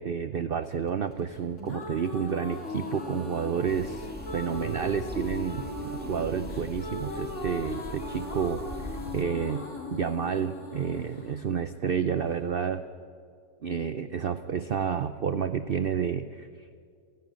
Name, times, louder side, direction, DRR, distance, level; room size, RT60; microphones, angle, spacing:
voice 1, 0.0-8.6 9.1-12.8 13.6-16.5, right 7 dB, 65° right, 12 dB, 0.5 m, -30 dB
sound 1, 0.5-8.4, left 2 dB, 60° left, 4.0 m, -52 dB
sound 2, 1.3-12.4, left 2 dB, 45° left, 2.7 m, -38 dB
sound 3, 3.7-9.2, right 1 dB, 5° right, 1.1 m, -41 dB
29.5 x 11.5 x 9.0 m, 2.3 s
omnidirectional pair, 1.8 m